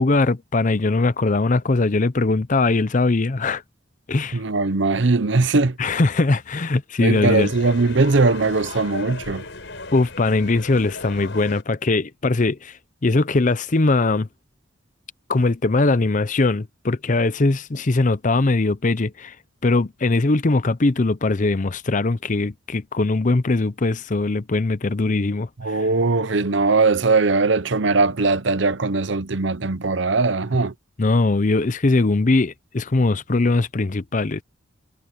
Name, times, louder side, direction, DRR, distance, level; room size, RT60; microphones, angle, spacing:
voice 1, 0.0-3.6 4.1-4.4 5.8-7.5 9.9-14.3 15.3-19.3 19.6-25.8 31.0-34.4, left 3 dB, 40° left, 0.7 m, -21 dB
voice 2, 4.3-5.8 7.0-9.5 25.6-30.7, right 3 dB, 65° right, 0.8 m, -20 dB
sound 1, 7.1-11.6, left 3 dB, 65° left, 6.1 m, -36 dB
head